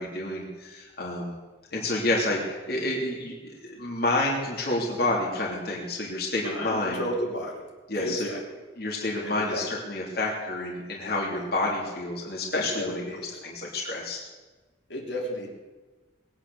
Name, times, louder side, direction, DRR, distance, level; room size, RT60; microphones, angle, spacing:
voice 1, 0.0-1.4 1.7-7.0 7.9-8.3 8.8-13.0 13.4-14.2, left 2 dB, 55° left, -3 dB, 3.1 m, -29 dB
voice 2, 6.4-7.6 7.9-8.6 9.2-9.7 11.3-11.4 12.5-13.3 14.9-15.5, equal, 70° left, -2 dB, 3.4 m, -33 dB
20.5 x 9.5 x 7.1 m, 1.2 s
head